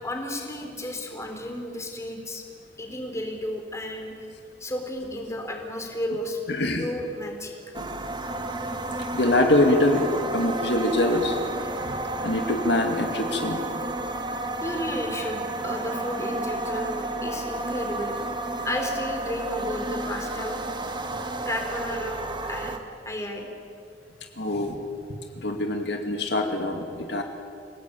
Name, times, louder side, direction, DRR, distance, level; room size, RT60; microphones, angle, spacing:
voice 1, 0.0-2.4 2.8-4.2 4.6-6.4 6.7-7.5 14.6-18.2 18.6-20.6 21.5-22.8 23.1-23.5, left 1 dB, 15° left, 3 dB, 3.7 m, -32 dB
voice 2, 6.5-6.9 7.8-7.9 9.1-10.1 10.3-11.4 11.9-13.6 24.4-24.8 25.4-27.2, left 1 dB, 65° left, 4 dB, 2.2 m, -24 dB
sound 1, 7.7-22.8, right 2 dB, 25° right, 1.7 m, -31 dB
27.5 x 18.0 x 9.1 m, 2.3 s
head